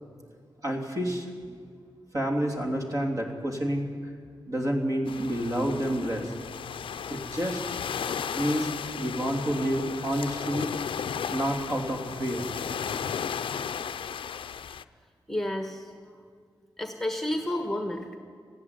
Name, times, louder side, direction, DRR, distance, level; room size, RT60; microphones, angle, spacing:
voice 1, 0.6-1.6 2.1-3.9 4.5-6.3 7.1-7.6 8.3-8.7 9.0-10.7 11.3-12.5 13.0-13.1, equal, 40° right, 1 dB, 3.3 m, -29 dB
sound 1, 5.1-14.8, left 7 dB, 80° left, 0.6 m, -35 dB
voice 2, 15.3-16.1 16.8-18.2, left 1 dB, 5° left, 4 dB, 1.4 m, -31 dB
19.0 x 15.0 x 9.8 m, 2.1 s
wide cardioid pair, 130°, 9 cm